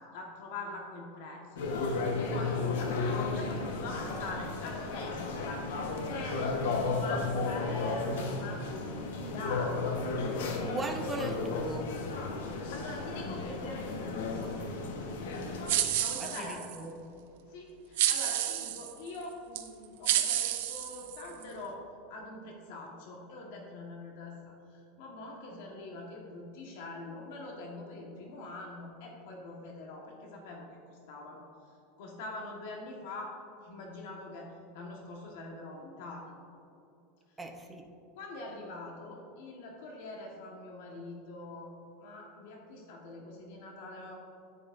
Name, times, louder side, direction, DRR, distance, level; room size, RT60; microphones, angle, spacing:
voice 1, 0.1-9.8 10.8-11.0 12.3-14.4 16.0-16.6 17.5-21.8 22.1-31.5 32.0-36.3 38.2-44.2, left 2 dB, 65° left, 0 dB, 1.3 m, -44 dB
sound 1, 1.6-15.8, left 3 dB, 90° left, 1.2 m, -34 dB
voice 2, 10.6-12.0 16.2-17.0 37.4-37.9, right 2 dB, 10° right, 2 dB, 0.7 m, -38 dB
sound 2, 15.7-16.8 18.0-18.9 19.5-19.7 20.0-21.4, right 12 dB, 75° right, 0.7 m, -30 dB
10.0 x 9.7 x 2.6 m, 2.7 s
supercardioid pair, 155°, 0 cm